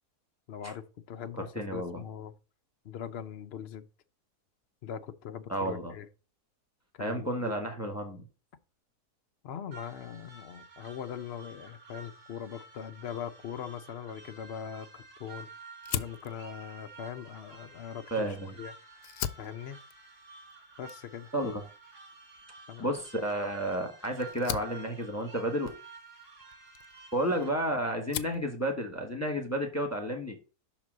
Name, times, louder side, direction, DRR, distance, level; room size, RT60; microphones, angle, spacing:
voice 1, 0.5-2.3 2.8-3.8 4.8-6.1 6.9-7.5 9.4-15.5 15.9-18.2 18.6-18.7 19.4-19.8 20.8-21.3 22.7-22.9, left 8 dB, 65° left, 0.6 m, -41 dB
voice 2, 1.4-2.0 5.5-5.9 7.0-8.2 18.1-18.5 21.3-21.6 22.8-25.7 27.1-30.4, right 1 dB, 10° left, 1.1 m, -31 dB
sound 1, 9.7-27.5, right 3 dB, 75° right, 2.3 m, -51 dB
Fire, 15.8-18.5 18.9-27.6 27.9-28.5, left 10 dB, 85° left, 1.1 m, -41 dB
6.0 x 4.0 x 6.1 m
omnidirectional pair, 1.7 m